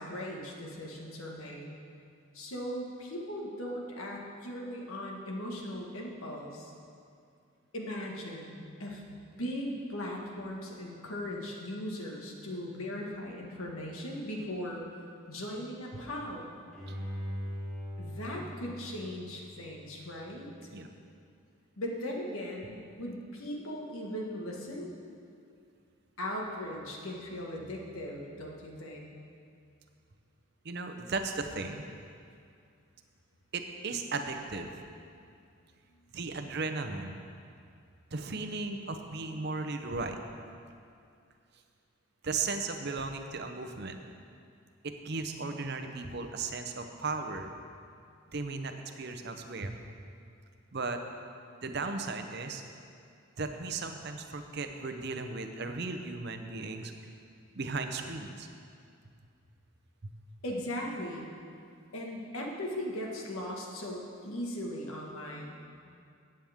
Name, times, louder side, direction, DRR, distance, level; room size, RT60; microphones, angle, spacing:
voice 1, 0.0-1.7 2.3-6.7 7.7-14.8 15.3-16.5 18.0-20.7 21.8-24.9 26.2-29.1 60.4-61.3 61.9-65.6, left 1 dB, 80° left, -1 dB, 1.7 m, -38 dB
Bowed string instrument, 16.7-19.8 20.3-20.4, equal, 5° left, 2.5 m, -40 dB
voice 2, 30.6-31.8 33.5-34.8 36.1-37.2 38.1-40.2 42.2-44.0 44.8-47.5 48.3-49.7 50.7-51.0 51.6-52.6 53.4-56.9 57.6-58.5 60.0-60.1, right 3 dB, 50° right, 6 dB, 0.7 m, -36 dB
15.0 x 8.7 x 3.6 m, 2.4 s
head